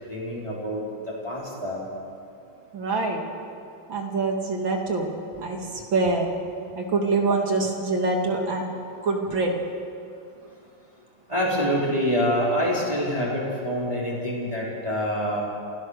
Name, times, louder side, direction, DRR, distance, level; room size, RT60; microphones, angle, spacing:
voice 1, 0.1-1.8 11.3-15.4, equal, 15° right, -6 dB, 4.2 m, -26 dB
voice 2, 2.7-3.2 3.9-5.1 5.4-6.3 6.7-8.7 9.0-9.5, right 3 dB, 65° right, 2 dB, 3.0 m, -25 dB
27.5 x 16.5 x 6.6 m, 2.4 s
omnidirectional pair, 2.3 m